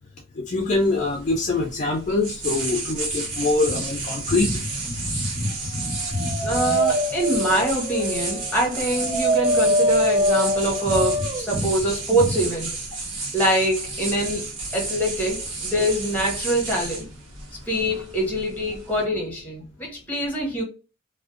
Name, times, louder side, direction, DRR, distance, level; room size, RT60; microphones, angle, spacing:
voice 1, 0.4-4.5, left 3 dB, 35° left, 0.4 m, -24 dB
sound 1, 0.6-19.0, right 2 dB, 75° right, 0.9 m, -31 dB
Dog, 5.9-11.5, equal, 30° right, 0.4 m, -24 dB
voice 2, 6.4-12.8 13.3-14.5 14.7-17.1 17.7-20.6, right 1 dB, 10° left, 0.8 m, -24 dB
2.5 x 2.1 x 2.4 m
head